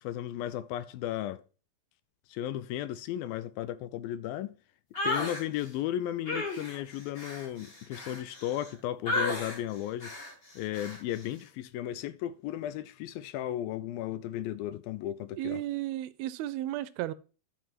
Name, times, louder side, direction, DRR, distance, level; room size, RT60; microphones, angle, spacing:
voice 1, 0.0-1.4 2.3-4.6 5.0-10.1 10.6-15.6, left 12 dB, 80° left, 2.4 m, -35 dB
sound 1, 4.9-5.4 6.3-8.7 9.1-9.6 10.0-10.3 10.7-11.0, left 2 dB, 25° left, 1.3 m, -33 dB
voice 2, 15.4-17.1, right 14 dB, 85° right, 2.5 m, -34 dB
11.5 x 4.7 x 6.0 m
omnidirectional pair, 4.3 m